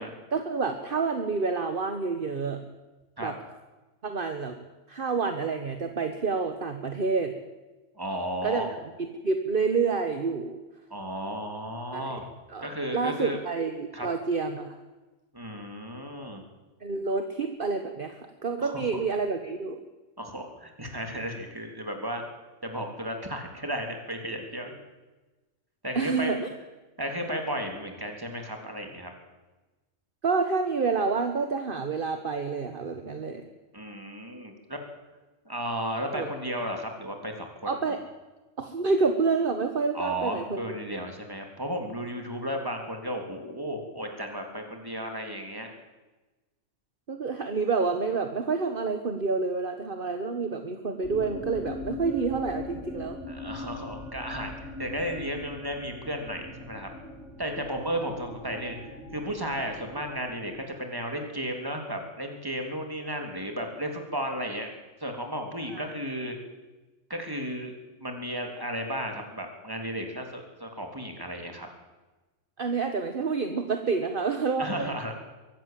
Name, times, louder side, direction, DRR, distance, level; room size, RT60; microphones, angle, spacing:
voice 1, 0.3-2.6 3.2-3.3 4.0-4.5 4.9-7.3 8.4-8.7 9.0-10.6 11.9-12.2 12.5-14.8 16.8-19.8 25.9-26.4 30.2-33.4 36.1-36.3 37.6-38.0 38.6-40.6 47.1-53.2 65.7-65.8 72.6-74.9, right 4 dB, 45° right, 6 dB, 1.5 m, -28 dB
voice 2, 8.0-8.7 10.9-12.3 12.6-13.4 13.9-14.1 15.3-16.4 18.6-18.8 20.2-22.2 22.6-24.8 25.8-26.3 27.0-29.1 33.7-34.8 35.4-37.8 39.9-45.7 53.3-56.9 57.4-64.7 65.0-66.4 67.1-67.7 68.0-71.7 74.6-75.1, equal, 15° right, 3 dB, 3.3 m, -34 dB
sound 1, 51.0-60.8, left 2 dB, 80° left, 4.3 m, -41 dB
23.0 x 16.5 x 7.6 m, 1.2 s
omnidirectional pair, 1.3 m